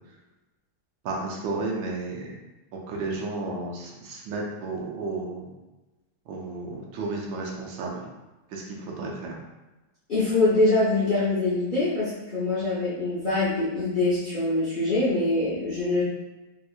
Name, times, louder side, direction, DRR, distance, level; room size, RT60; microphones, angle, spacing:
voice 1, 1.0-2.3 2.7-5.5 6.3-8.0 8.5-9.3, right 3 dB, 80° right, -1 dB, 1.4 m, -32 dB
voice 2, 10.1-16.0, left 2 dB, 65° left, -10 dB, 0.4 m, -24 dB
3.5 x 2.7 x 2.3 m, 1.1 s
omnidirectional pair, 2.1 m